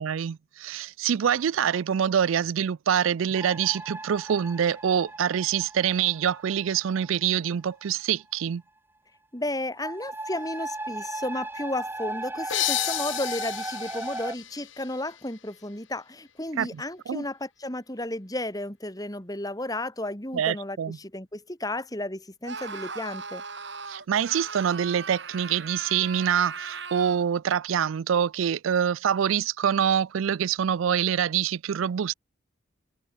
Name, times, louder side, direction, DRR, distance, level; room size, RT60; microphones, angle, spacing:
voice 1, 0.0-8.6 16.6-17.2 20.3-21.0 23.9-32.1, right 8 dB, 80° right, 0.4 m, -25 dB
sound 1, 3.3-7.8 9.7-14.4, right 2 dB, 10° right, 2.7 m, -37 dB
voice 2, 9.3-23.4, left 1 dB, 20° left, 3.3 m, -33 dB
sound 2, 12.5-15.9, left 14 dB, 70° left, 1.5 m, -32 dB
Screaming, 22.4-27.3, right 5 dB, 60° right, 5.5 m, -38 dB
head